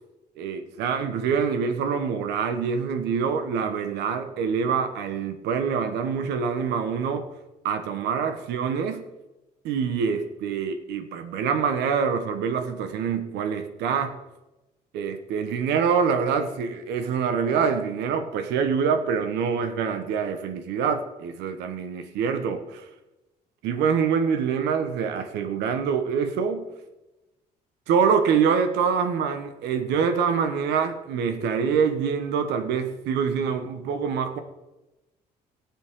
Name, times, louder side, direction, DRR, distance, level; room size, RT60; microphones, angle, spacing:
voice 1, 0.4-7.3 7.6-9.0 9.6-14.2 14.9-22.8 23.6-26.7 27.9-34.4, right 6 dB, 85° right, 8 dB, 1.4 m, -25 dB
17.5 x 7.5 x 3.8 m, 1.0 s
cardioid pair, 110°, 17 cm